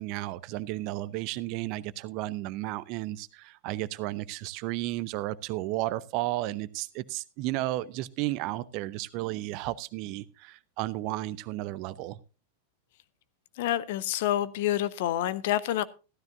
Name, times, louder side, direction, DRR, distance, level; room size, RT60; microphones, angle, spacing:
voice 1, 0.0-12.2, right 16 dB, 45° right, 17 dB, 0.7 m, -33 dB
voice 2, 13.6-15.8, left 12 dB, 50° left, 18 dB, 0.8 m, -28 dB
15.0 x 13.0 x 2.5 m, 0.32 s
figure-of-eight pair, 90°, 0 cm